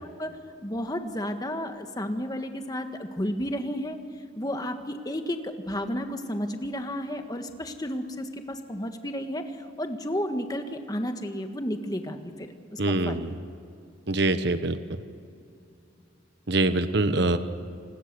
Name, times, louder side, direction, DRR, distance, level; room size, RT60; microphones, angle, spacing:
voice 1, 0.6-13.3, equal, 20° left, 6 dB, 1.6 m, -32 dB
voice 2, 12.8-13.4 14.1-15.0 16.5-17.4, right 2 dB, 60° right, 10 dB, 1.1 m, -24 dB
28.0 x 20.5 x 6.9 m, 2.5 s
head